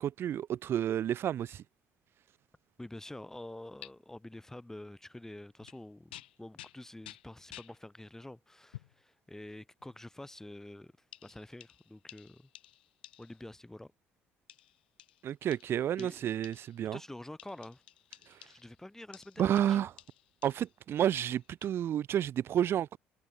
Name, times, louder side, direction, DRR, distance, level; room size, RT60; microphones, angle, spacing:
voice 1, 0.0-1.6 15.2-17.0 18.3-18.4 19.4-19.9 20.4-23.0, right 10 dB, 50° right, 0.6 m, -30 dB
voice 2, 2.8-10.9 11.2-12.5 13.2-13.9 16.0-16.2 16.9-17.8 18.5-19.8, left 1 dB, 10° left, 1.1 m, -47 dB
sound 1, 3.8-3.9 5.6-5.8 6.1-7.8 8.7-9.0 9.8-10.0 11.1-13.5 14.5-16.9 17.4-18.8 19.1-20.8 21.2-21.7, left 14 dB, 85° left, 1.4 m, -53 dB
hypercardioid pair, 60°, 5 cm